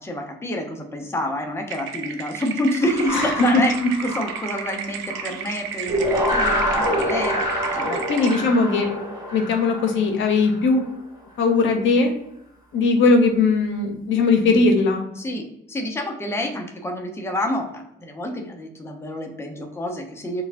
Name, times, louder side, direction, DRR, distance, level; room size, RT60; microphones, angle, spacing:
voice 1, 0.0-8.0 15.2-20.4, left 1 dB, 15° left, 2 dB, 0.7 m, -28 dB
sound 1, 1.7-8.4, right 7 dB, 80° right, 0.5 m, -34 dB
sound 2, 2.8-5.5 5.9-11.0, equal, 20° right, 1.0 m, -26 dB
voice 2, 3.1-3.6 8.1-8.9 9.3-10.8 11.4-12.1 12.7-15.1, left 3 dB, 75° left, 4 dB, 0.7 m, -19 dB
4.6 x 2.2 x 2.5 m, 0.79 s
cardioid pair, 90°, 20 cm